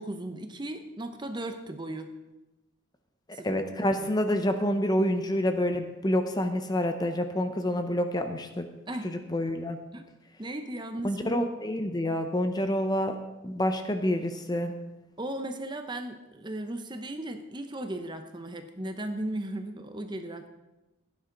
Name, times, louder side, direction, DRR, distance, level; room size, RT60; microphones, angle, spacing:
voice 1, 0.0-2.1 3.3-3.6 3.9-4.2 8.9-9.1 9.9-10.0 10.4-11.5 12.6-12.7 15.2-20.5, right 1 dB, 20° right, 7 dB, 0.8 m, -36 dB
voice 2, 3.4-8.7 9.0-9.8 11.0-13.2 13.4-14.7, left 1 dB, 20° left, 7 dB, 0.7 m, -28 dB
16.5 x 9.6 x 3.9 m, 1.0 s
head